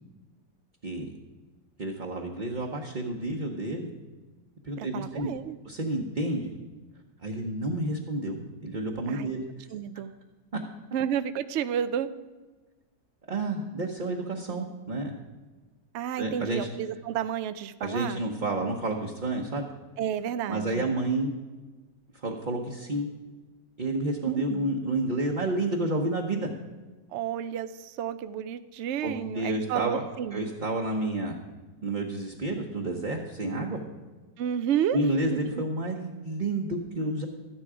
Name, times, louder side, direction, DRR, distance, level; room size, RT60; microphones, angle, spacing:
voice 1, 1.8-3.9 4.6-5.3 5.6-6.5 7.2-9.5 13.3-15.1 16.2-16.7 17.8-19.7 20.5-21.3 22.2-23.1 23.8-26.5 29.0-30.0 30.3-31.4 31.8-33.8 34.9-37.3, right 2 dB, 35° right, 0 dB, 1.0 m, -30 dB
voice 2, 4.8-5.6 9.1-9.3 9.7-10.1 10.9-12.1 15.9-18.2 20.0-20.9 24.3-24.6 27.1-30.4 34.4-35.1 35.3-35.6, right 9 dB, 85° right, 11 dB, 0.6 m, -31 dB
13.0 x 10.5 x 4.9 m, 1.3 s
omnidirectional pair, 1.8 m